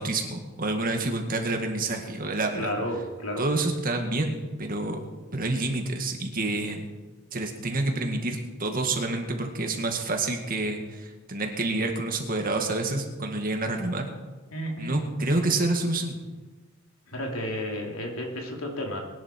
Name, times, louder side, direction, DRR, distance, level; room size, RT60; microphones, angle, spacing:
voice 1, 0.0-2.7 3.4-5.0 5.3-6.9 7.3-14.1 14.8-16.2, right 2 dB, 40° right, 3 dB, 2.0 m, -28 dB
voice 2, 2.5-3.4 14.5-15.0 17.1-19.0, equal, 75° left, 0 dB, 3.3 m, -32 dB
21.0 x 11.5 x 4.6 m, 1.2 s
head